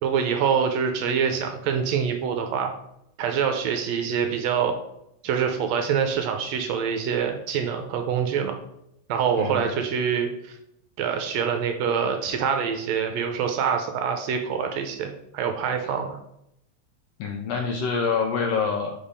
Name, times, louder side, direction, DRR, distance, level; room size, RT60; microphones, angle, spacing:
voice 1, 0.0-2.7 3.2-4.7 5.2-8.6 9.1-10.6 11.0-16.2, right 7 dB, 75° right, 5 dB, 1.6 m, -25 dB
voice 2, 17.2-18.9, left 5 dB, 80° left, 3 dB, 1.4 m, -26 dB
5.1 x 3.5 x 5.4 m, 0.78 s
omnidirectional pair, 3.4 m